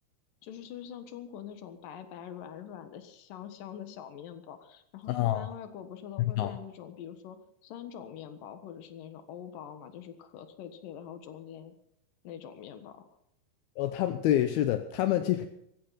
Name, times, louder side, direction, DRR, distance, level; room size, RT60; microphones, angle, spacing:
voice 1, 0.4-11.7 12.2-13.1, left 9 dB, 60° left, 9 dB, 2.6 m, -44 dB
voice 2, 5.1-5.5 6.2-6.6 13.8-15.5, left 12 dB, 80° left, 8 dB, 2.3 m, -27 dB
20.0 x 15.0 x 4.2 m, 0.76 s
omnidirectional pair, 5.3 m